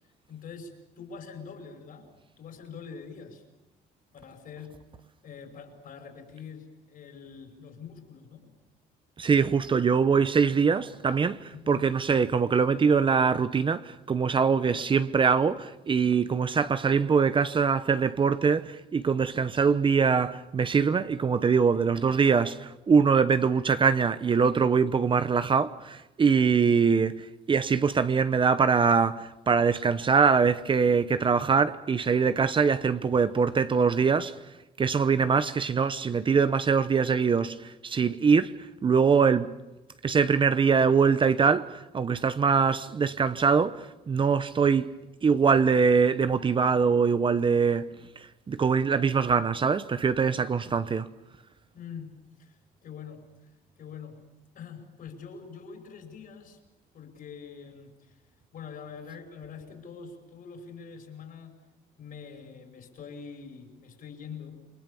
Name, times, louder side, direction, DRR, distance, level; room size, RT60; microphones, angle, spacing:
voice 1, 0.3-3.4 4.1-4.8 5.2-8.5 11.5-12.2 14.7-14.9 51.7-53.5 53.8-54.2 54.5-56.6 56.9-58.2 58.5-61.6 62.0-64.7, left 6 dB, 55° left, 5.7 m, -44 dB
voice 2, 9.2-34.3 34.8-38.6 38.8-39.5 40.0-44.9 45.2-47.9 48.5-51.1, right 5 dB, 30° right, 0.8 m, -23 dB
28.5 x 23.0 x 7.0 m
cardioid pair, 110°, 17 cm